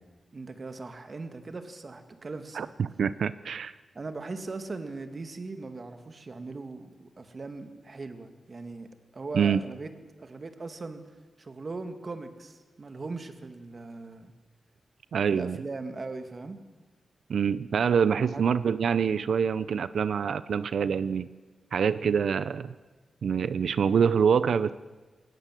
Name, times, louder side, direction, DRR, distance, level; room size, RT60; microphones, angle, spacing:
voice 1, 0.3-2.7 3.9-8.9 9.1-9.9 10.2-11.0 11.4-14.3 15.3-16.6 18.3-18.5, right 3 dB, 40° right, 8 dB, 1.9 m, -39 dB
voice 2, 2.6-3.7 9.3-9.6 15.1-15.6 17.3-21.3 21.7-22.7 23.2-24.7, right 7 dB, 75° right, 15 dB, 0.6 m, -25 dB
21.0 x 19.0 x 7.6 m, 1.2 s
wide cardioid pair, 130°, 0 cm